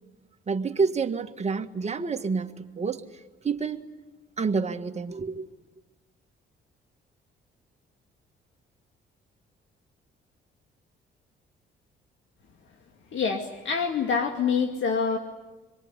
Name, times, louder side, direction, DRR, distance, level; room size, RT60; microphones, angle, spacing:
voice 1, 0.5-3.8 4.4-5.5, right 5 dB, 35° right, 1.8 m, -28 dB
voice 2, 13.1-15.2, left 5 dB, 70° left, 2.3 m, -26 dB
26.5 x 23.0 x 9.8 m
cardioid pair, 90°, 20 cm